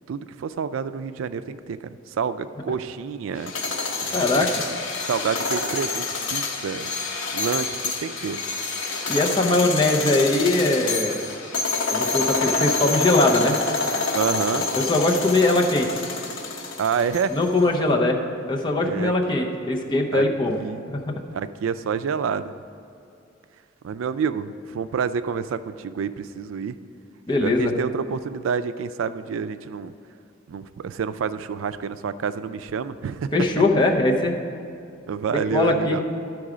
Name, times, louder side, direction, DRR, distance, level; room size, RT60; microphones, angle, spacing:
voice 1, 0.1-3.5 4.0-4.5 5.1-6.9 7.3-8.4 14.1-14.7 16.8-17.4 18.8-19.1 20.1-20.3 20.6-20.8 21.3-22.5 23.8-26.8 27.4-29.9 30.5-33.3 35.1-36.0, right 6 dB, 90° right, 12 dB, 0.3 m, -28 dB
sound 1, 3.4-17.5, left 3 dB, 75° left, 0.9 m, -27 dB
voice 2, 4.1-4.5 9.1-11.2 11.9-13.6 14.8-15.9 17.3-18.2 18.5-20.6 20.9-21.1 27.3-27.7 33.3-34.4 35.5-36.0, left 2 dB, 25° left, 0 dB, 0.7 m, -21 dB
11.5 x 4.7 x 4.9 m, 2.6 s
head